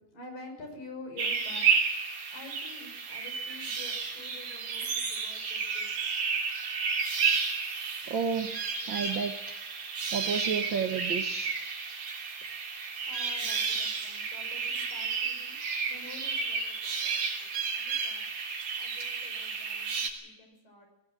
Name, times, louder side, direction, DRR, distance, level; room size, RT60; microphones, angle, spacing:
voice 1, 0.1-6.0 13.0-15.6 15.9-18.2 18.8-19.9 20.2-20.9, left 2 dB, 80° left, 4 dB, 8.1 m, -48 dB
sound 1, 1.2-20.1, right 5 dB, 80° right, 5.1 m, -32 dB
voice 2, 8.1-8.5 8.9-9.6 10.1-11.6, right 6 dB, 65° right, 6 dB, 1.2 m, -32 dB
23.0 x 18.0 x 7.8 m, 0.96 s
omnidirectional pair, 3.8 m